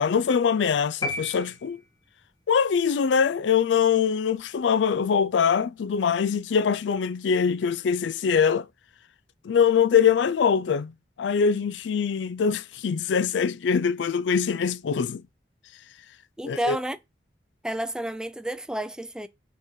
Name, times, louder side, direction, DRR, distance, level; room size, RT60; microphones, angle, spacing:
voice 1, 0.0-1.8 2.5-8.7 9.4-15.2 16.4-16.8, left 6 dB, 85° left, 0.4 m, -23 dB
sound 1, 1.0-2.3, left 2 dB, 20° left, 1.0 m, -33 dB
voice 2, 16.4-17.0 17.6-19.3, right 1 dB, 5° right, 0.3 m, -30 dB
5.4 x 3.7 x 5.6 m
head